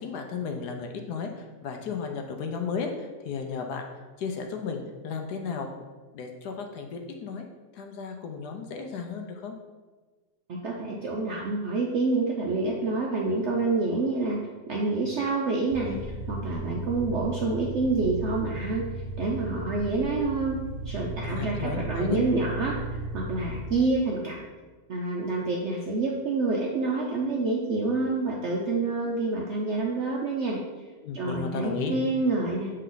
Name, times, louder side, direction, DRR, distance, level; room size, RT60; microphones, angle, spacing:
voice 1, 0.0-3.8 4.2-5.7 6.1-7.5 7.7-9.5 21.2-22.2 31.0-31.9, left 5 dB, 70° left, 4 dB, 1.1 m, -34 dB
voice 2, 10.5-14.4 14.7-18.9 19.2-24.4 24.9-30.6 31.1-32.7, right 3 dB, 85° right, -2 dB, 0.6 m, -27 dB
sound 1, 15.7-23.8, right 1 dB, 55° right, 1.3 m, -35 dB
7.5 x 3.3 x 3.8 m, 1.3 s
omnidirectional pair, 2.0 m